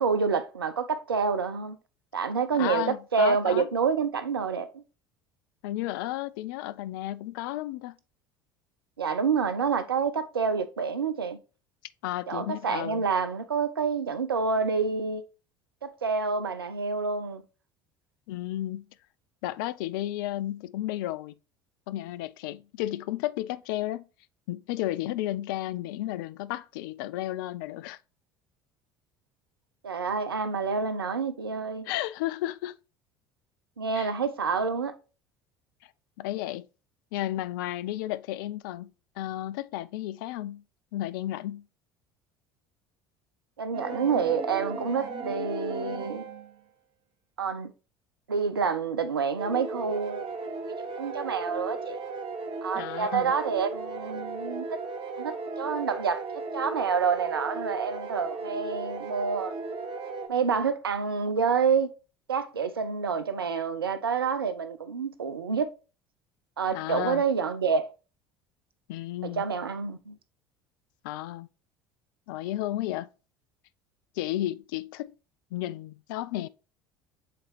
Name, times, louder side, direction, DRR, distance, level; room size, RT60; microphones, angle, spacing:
voice 1, 0.0-1.8 2.1-4.7 9.0-11.4 12.3-15.2 15.8-17.4 29.8-31.9 33.8-34.9 43.6-46.2 47.4-47.7 48.3-50.3 51.0-52.0 52.6-54.8 55.2-56.2 56.5-59.5 60.3-61.9 62.3-65.7 66.6-67.9 69.2-70.2, right 5 dB, 85° right, 0.6 m, -28 dB
voice 2, 2.5-3.7 5.6-7.9 12.0-13.0 18.3-18.9 19.4-21.3 21.9-24.0 24.5-28.0 31.9-32.7 33.9-34.1 36.2-36.6 37.1-38.9 39.2-40.6 40.9-41.6 52.7-53.3 66.7-67.2 68.9-69.4 71.0-71.5 72.3-73.1 74.2-75.1 75.5-76.5, left 14 dB, 65° left, 0.4 m, -33 dB
sound 1, 43.7-46.6 49.4-60.3, right 4 dB, 45° right, 1.1 m, -36 dB
7.6 x 4.1 x 3.1 m
figure-of-eight pair, 65°, 12 cm